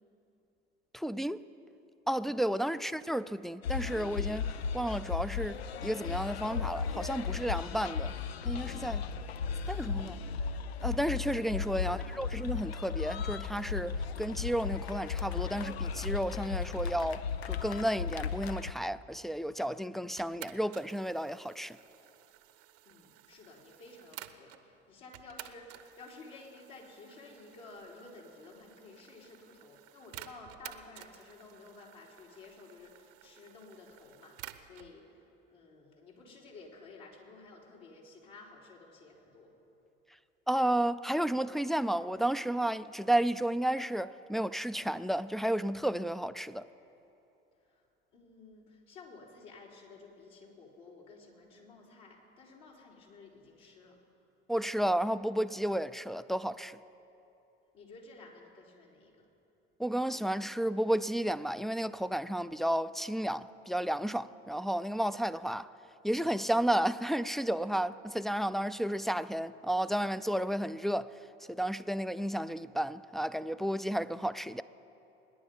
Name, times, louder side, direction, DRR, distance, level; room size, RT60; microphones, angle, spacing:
voice 1, 0.9-1.4 2.1-8.1 8.5-9.0 9.7-10.2 10.8-21.8 40.5-46.7 54.5-56.8 59.8-65.7 66.0-71.1 71.5-74.6, right 1 dB, ahead, 0.3 m, -32 dB
sound 1, 3.6-18.7, left 6 dB, 90° left, 0.5 m, -36 dB
voice 2, 11.8-12.3 22.9-39.5 47.6-54.0 57.7-59.3, left 3 dB, 65° left, 3.7 m, -53 dB
sound 2, 20.2-24.6 25.1-34.9, right 15 dB, 65° right, 0.8 m, -52 dB
24.0 x 10.5 x 5.3 m
hypercardioid pair, 65°, 30 cm